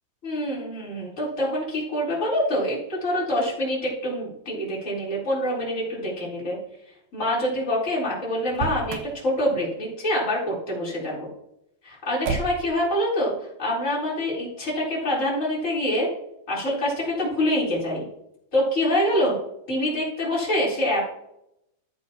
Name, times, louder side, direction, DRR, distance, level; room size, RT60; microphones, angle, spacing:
voice 1, 0.2-6.6 7.1-11.3 11.8-13.3 13.6-16.1 16.5-18.0 18.5-19.4 19.7-21.0, left 1 dB, 20° left, -6 dB, 4.0 m, -25 dB
Motor vehicle (road), 8.4-9.2 12.2-12.8, right 4 dB, 75° right, 2.6 m, -30 dB
14.0 x 9.2 x 2.9 m, 0.80 s
omnidirectional pair, 3.8 m